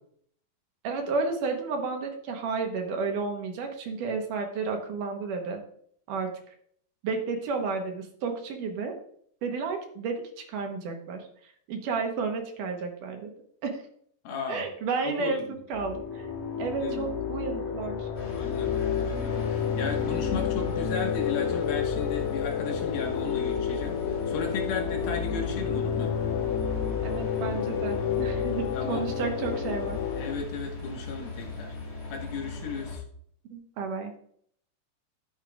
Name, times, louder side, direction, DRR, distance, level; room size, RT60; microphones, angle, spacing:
voice 1, 0.8-5.6 6.1-6.5 7.0-9.0 9.4-10.2 10.5-13.3 13.6-13.7 14.5-16.3 16.6-18.1 27.0-30.0 33.5-34.1, right 4 dB, 70° right, 3 dB, 2.5 m, -32 dB
voice 2, 14.2-14.7 15.0-15.6 16.8-17.1 18.3-26.1 28.7-29.0 30.1-31.8 32.1-33.0, left 5 dB, 80° left, 1 dB, 3.4 m, -35 dB
sound 1, 15.7-30.3, left 7 dB, 65° left, 2.8 m, -30 dB
sound 2, 18.1-33.0, left 3 dB, 20° left, 3.1 m, -39 dB
11.5 x 8.6 x 2.4 m, 0.63 s
omnidirectional pair, 4.2 m